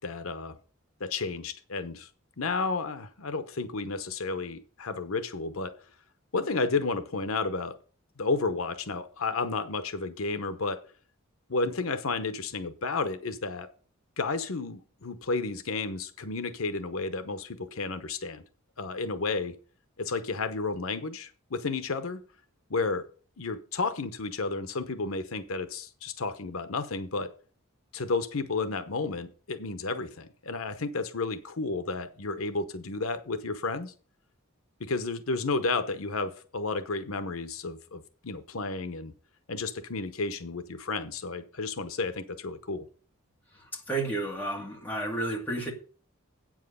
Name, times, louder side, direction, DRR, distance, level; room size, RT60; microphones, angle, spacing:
voice 1, 0.0-0.6 1.0-2.1 2.4-5.8 6.3-7.8 8.2-10.8 11.5-13.7 14.2-18.4 18.8-19.6 20.0-22.2 22.7-23.1 23.4-27.3 27.9-33.9 34.8-39.1 39.5-42.9, left 3 dB, 80° left, 0.9 m, -32 dB
voice 2, 43.7-45.7, right 2 dB, 10° left, 2.2 m, -31 dB
8.5 x 7.5 x 5.5 m
head